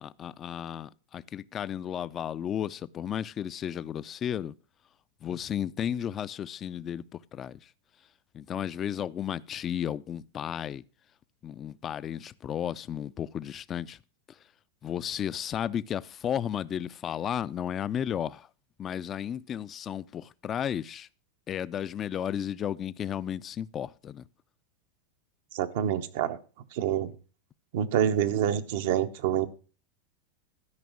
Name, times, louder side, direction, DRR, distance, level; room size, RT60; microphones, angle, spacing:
voice 1, 0.0-4.5 5.2-7.7 8.3-10.8 11.4-14.0 14.8-18.5 18.8-21.1 21.5-24.2, left 9 dB, 30° left, 0.4 m, -33 dB
voice 2, 25.5-26.4 26.7-27.1 27.7-29.5, right 10 dB, 65° right, 1.0 m, -27 dB
13.0 x 5.2 x 6.3 m
hypercardioid pair, 110°, 0 cm